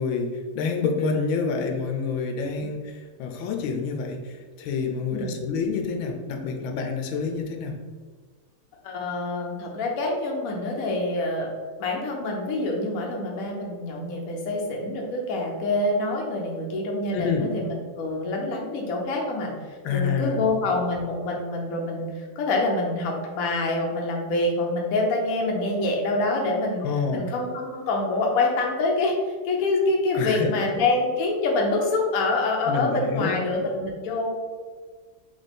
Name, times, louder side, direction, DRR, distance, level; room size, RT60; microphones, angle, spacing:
voice 1, 0.0-7.8 17.1-17.5 19.8-20.5 26.8-27.2 30.1-30.5 32.7-33.4, left 5 dB, 80° left, 4 dB, 1.4 m, -27 dB
voice 2, 8.8-11.5 11.8-19.5 19.9-26.8 27.1-29.1 29.4-34.3, left 2 dB, 55° left, 0 dB, 1.0 m, -26 dB
3.9 x 3.3 x 4.1 m, 1.5 s
omnidirectional pair, 2.2 m